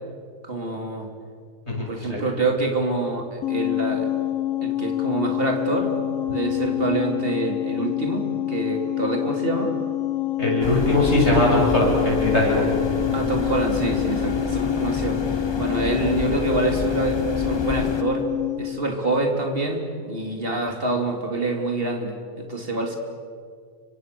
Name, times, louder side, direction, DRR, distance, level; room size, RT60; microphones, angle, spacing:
voice 1, 0.4-1.1 1.9-4.1 4.6-6.0 6.3-9.7 13.1-18.3 18.6-23.0, right 2 dB, 40° right, 3 dB, 3.5 m, -26 dB
voice 2, 1.7-2.2 10.4-12.6, left 1 dB, 50° left, -2 dB, 7.8 m, -20 dB
sound 1, 3.4-18.8, left 15 dB, 70° left, 1.2 m, -27 dB
sound 2, 10.6-18.0, left 3 dB, 25° left, 0.6 m, -29 dB
30.0 x 25.0 x 7.0 m, 2.1 s
omnidirectional pair, 1.5 m